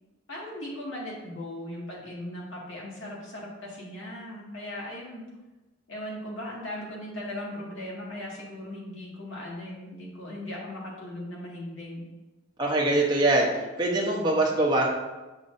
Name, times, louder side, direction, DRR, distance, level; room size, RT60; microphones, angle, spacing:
voice 1, 0.3-5.2 5.9-12.1, left 1 dB, 75° left, -4 dB, 2.1 m, -38 dB
voice 2, 12.6-13.5 13.8-14.9, right 2 dB, 20° right, -4 dB, 1.1 m, -23 dB
7.3 x 6.2 x 2.7 m, 1.1 s
head